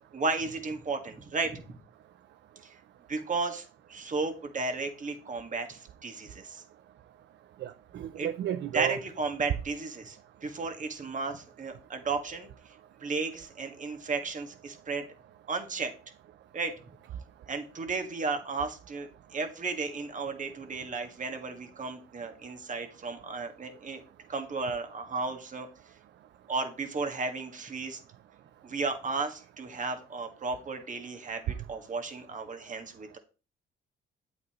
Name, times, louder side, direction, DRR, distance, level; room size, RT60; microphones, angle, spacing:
voice 1, 0.0-1.8 3.1-6.6 7.9-8.3 8.7-12.5 13.0-15.0 15.5-15.9 16.5-16.7 17.5-24.0 24.3-25.7 26.5-28.0 28.6-33.2, right 4 dB, 40° right, 1.7 m, -34 dB
voice 2, 7.6-8.9, right 12 dB, 65° right, 0.5 m, -33 dB
8.5 x 8.0 x 3.0 m
cardioid pair, 90°, 20 cm